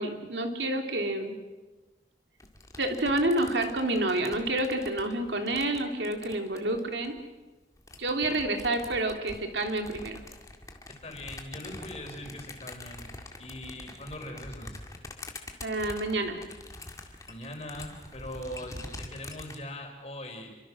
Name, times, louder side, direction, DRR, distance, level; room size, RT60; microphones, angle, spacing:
voice 1, 0.0-1.4 2.8-7.2 8.0-10.2 15.6-16.4, right 1 dB, 85° right, 4 dB, 3.1 m, -29 dB
sound 1, 2.4-7.2 7.8-19.6, left 2 dB, 20° left, 2.1 m, -45 dB
voice 2, 11.0-13.1 13.4-14.8 17.3-20.5, left 1 dB, 35° left, 3 dB, 4.9 m, -41 dB
28.5 x 24.5 x 6.3 m, 1.2 s
head